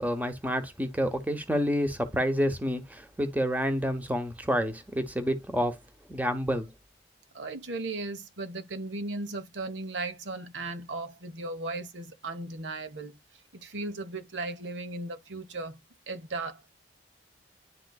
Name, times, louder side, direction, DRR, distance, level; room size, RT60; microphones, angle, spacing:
voice 1, 0.0-5.8 6.1-6.7, equal, 10° right, 0.9 m, -28 dB
voice 2, 7.3-13.1 13.5-15.8 16.1-16.6, right 2 dB, 85° right, 1.0 m, -36 dB
10.5 x 3.8 x 2.3 m
head